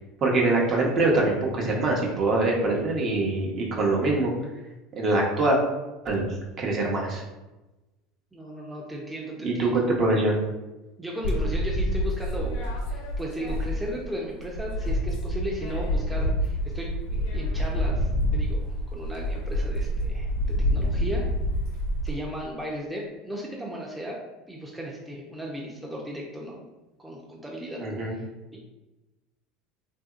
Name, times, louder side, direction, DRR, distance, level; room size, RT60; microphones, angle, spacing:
voice 1, 0.2-4.3 5.0-5.6 6.0-6.2 6.6-7.2 9.4-10.4 27.8-28.2, right 2 dB, 45° right, -2 dB, 0.7 m, -24 dB
voice 2, 8.3-9.8 11.0-16.9 17.3-20.3 20.7-21.2 22.0-24.2 24.5-26.6 27.0-28.3, equal, 10° right, -3 dB, 0.5 m, -36 dB
sound 1, 11.2-14.1 14.4-22.1, equal, 75° left, 0.6 m, -27 dB
2.8 x 2.6 x 2.4 m, 1.1 s
hypercardioid pair, 90°, 0 cm